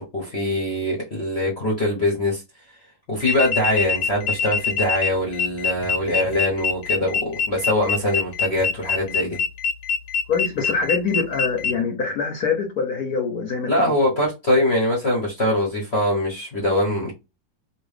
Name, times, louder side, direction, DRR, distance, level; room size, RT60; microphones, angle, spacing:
voice 1, 0.0-2.4 3.1-9.4 13.7-17.1, left 1 dB, 45° left, -3 dB, 1.0 m, -23 dB
sound 1, 3.2-11.7, left 5 dB, 80° left, 1.4 m, -24 dB
voice 2, 10.3-13.9, left 5 dB, 60° left, 2 dB, 1.1 m, -24 dB
2.9 x 2.7 x 3.2 m, 0.25 s
omnidirectional pair, 2.1 m